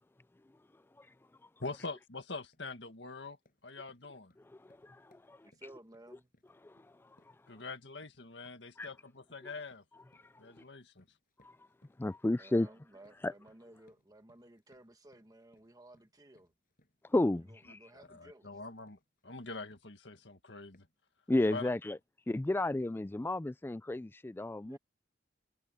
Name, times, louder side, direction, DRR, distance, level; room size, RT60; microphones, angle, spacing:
voice 1, 1.6-3.4 3.6-4.3 7.5-9.8 10.4-11.1 18.0-20.9 21.5-21.7, left 3 dB, 70° left, 2.0 m, -44 dB
sound 1, 2.5-2.7 3.1-20.4 20.7-21.1, left 1 dB, 50° left, 7.7 m, -72 dB
voice 2, 4.6-5.5 6.6-6.7 8.8-8.9 12.0-12.7 13.2-13.3 17.1-17.8 21.3-22.0 22.3-24.8, left 2 dB, 10° left, 0.3 m, -32 dB
voice 3, 5.3-6.3 12.3-16.5 17.4-18.6 24.7-24.8, right 1 dB, 20° right, 1.4 m, -56 dB
head